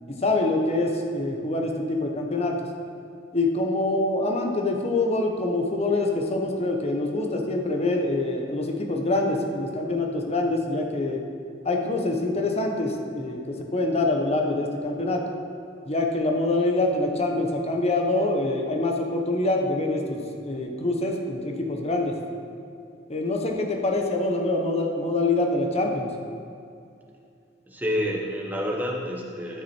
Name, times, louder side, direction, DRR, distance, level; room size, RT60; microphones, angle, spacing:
voice 1, 0.2-2.7 3.3-11.2 11.6-15.2 15.8-22.2 23.1-26.1, left 2 dB, 35° left, 2 dB, 1.1 m, -25 dB
voice 2, 27.7-29.6, equal, 10° right, -2 dB, 1.3 m, -28 dB
12.5 x 6.0 x 4.5 m, 2.5 s
head